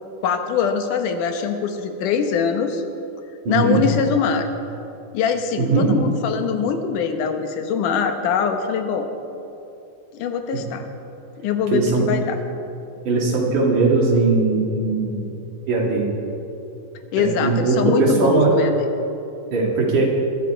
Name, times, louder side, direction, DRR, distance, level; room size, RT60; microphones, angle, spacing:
voice 1, 0.2-2.8 3.5-4.5 5.1-9.1 10.1-10.9 11.4-12.4 17.1-18.8, left 6 dB, 80° left, 6 dB, 2.6 m, -23 dB
voice 2, 3.5-3.8 5.6-6.0 11.7-12.1 13.1-15.3 15.7-16.1 17.1-18.6 19.5-20.1, right 3 dB, 75° right, -2 dB, 3.9 m, -19 dB
21.5 x 12.5 x 4.5 m, 2.8 s
omnidirectional pair, 3.6 m